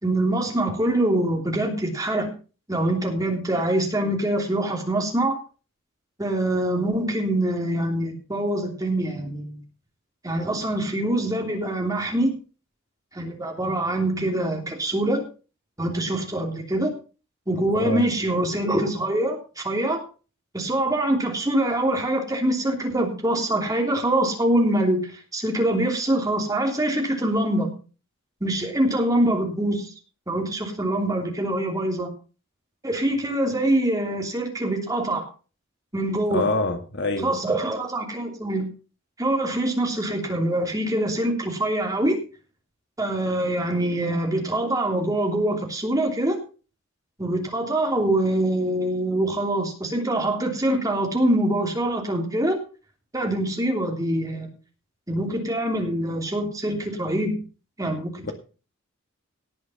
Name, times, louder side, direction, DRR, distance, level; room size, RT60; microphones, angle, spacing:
voice 1, 0.0-2.3 2.7-5.4 6.2-9.6 10.2-12.3 13.1-15.2 15.8-16.9 17.5-20.0 20.5-27.7 28.4-29.9 30.3-32.1 32.8-35.2 35.9-36.5 37.2-38.7 39.2-42.2 43.0-46.4 47.2-52.6 53.1-54.5 55.1-57.3 57.8-58.3, right 1 dB, 15° right, 2 dB, 3.0 m, -24 dB
voice 2, 17.7-18.0 36.3-37.3 58.2-58.3, left 2 dB, 55° left, 7 dB, 1.7 m, -26 dB
18.0 x 6.4 x 5.7 m, 0.36 s
head